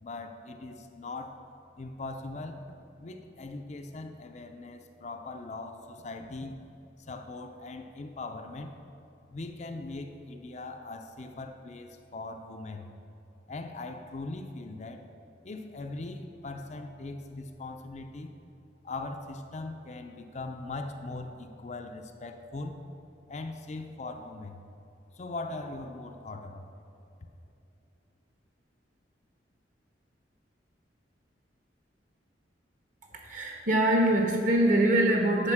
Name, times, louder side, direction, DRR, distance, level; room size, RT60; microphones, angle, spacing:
voice 1, 0.0-1.4 1.8-2.7 3.0-6.6 7.0-8.7 9.3-12.9 13.5-15.0 15.4-18.3 18.8-22.8 23.3-24.6 25.1-26.8 27.2-27.3, left 2 dB, 40° left, 5 dB, 0.5 m, -40 dB
voice 2, 33.2-35.5, right 1 dB, 45° right, 1 dB, 1.3 m, -23 dB
9.6 x 5.2 x 6.0 m, 2.8 s
head